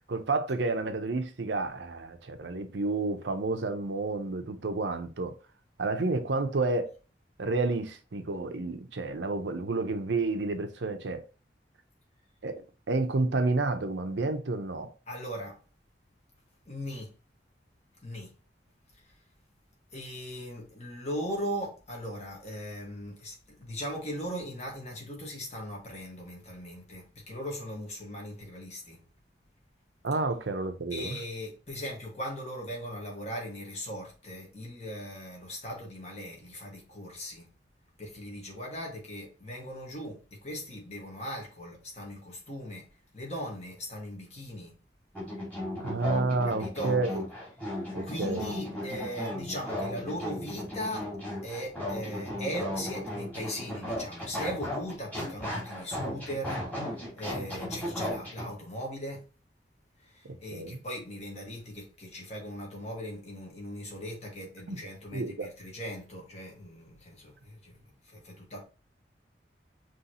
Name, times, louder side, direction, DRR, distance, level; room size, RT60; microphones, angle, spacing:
voice 1, 0.1-5.3 5.8-6.9 7.4-11.2 12.4-14.9 30.0-31.2 45.8-47.2 47.9-48.5 60.2-60.8 64.7-64.8 65.1-65.5, right 3 dB, 85° right, 0.7 m, -30 dB
voice 2, 15.1-15.6 16.6-17.1 18.0-18.3 19.9-29.0 30.1-30.2 30.9-37.5 38.0-42.9 43.1-44.7 46.4-47.0 48.0-51.1 51.4-56.6 57.1-59.2 60.1-67.8 68.1-68.6, equal, 40° left, 1.6 m, -39 dB
sound 1, 45.1-58.4, left 1 dB, 10° left, 2.1 m, -36 dB
5.6 x 3.1 x 2.9 m
head